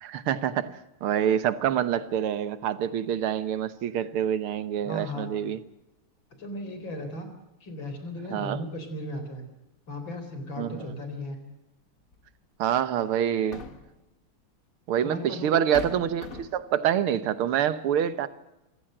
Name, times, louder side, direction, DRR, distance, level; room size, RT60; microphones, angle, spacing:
voice 1, 0.0-5.6 8.3-8.6 10.6-10.9 12.6-13.6 14.9-18.3, right 9 dB, 85° right, 2.0 m, -26 dB
voice 2, 4.8-5.3 6.4-7.3 7.6-9.4 9.9-11.4 15.0-15.5, left 1 dB, 65° left, 4.7 m, -36 dB
sound 1, 12.1-12.3 13.3-14.0 15.1-15.2 15.7-16.7, left 5 dB, 40° left, 1.9 m, -40 dB
27.0 x 15.0 x 7.7 m
omnidirectional pair, 2.3 m